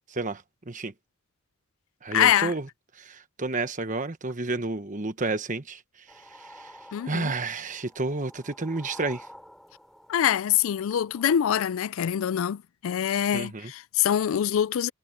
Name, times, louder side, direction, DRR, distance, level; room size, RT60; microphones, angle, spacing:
voice 1, 0.1-0.9 2.0-2.7 2.9-9.3 13.3-13.7, right 3 dB, 35° right, 1.2 m, -31 dB
voice 2, 2.1-2.5 6.9-7.3 10.1-14.9, left 10 dB, 70° left, 0.3 m, -24 dB
sound 1, 6.1-11.3, equal, ahead, 6.2 m, -49 dB
head